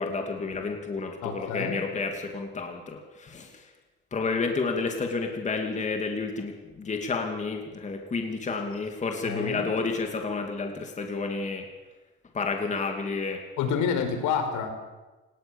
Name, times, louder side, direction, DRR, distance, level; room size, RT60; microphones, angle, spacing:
voice 1, 0.0-3.6 4.1-11.7 12.3-13.4, left 4 dB, 25° left, 3 dB, 2.7 m, -30 dB
voice 2, 1.2-1.8 9.2-9.7 13.6-14.7, left 6 dB, 70° left, 6 dB, 5.0 m, -28 dB
28.0 x 19.0 x 7.3 m, 1.2 s
cardioid pair, 140°, 31 cm